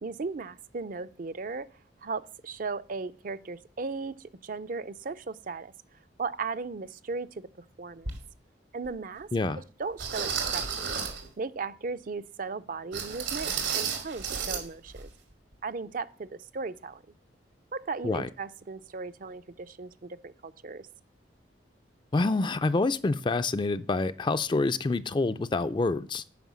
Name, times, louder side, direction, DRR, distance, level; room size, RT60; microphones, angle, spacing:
voice 1, 0.0-1.7 2.0-8.1 8.7-9.3 9.6-10.9 11.4-15.1 15.6-17.0 17.7-20.9, right 4 dB, 50° right, 0.5 m, -37 dB
sound 1, 8.0-8.2 8.9-9.0 10.0-11.3 12.9-14.6 14.9-15.1 15.5-15.6, right 6 dB, 90° right, 2.3 m, -32 dB
voice 2, 9.3-9.6 18.0-18.3 22.1-26.2, left 3 dB, 25° left, 0.4 m, -27 dB
9.3 x 5.6 x 7.3 m
head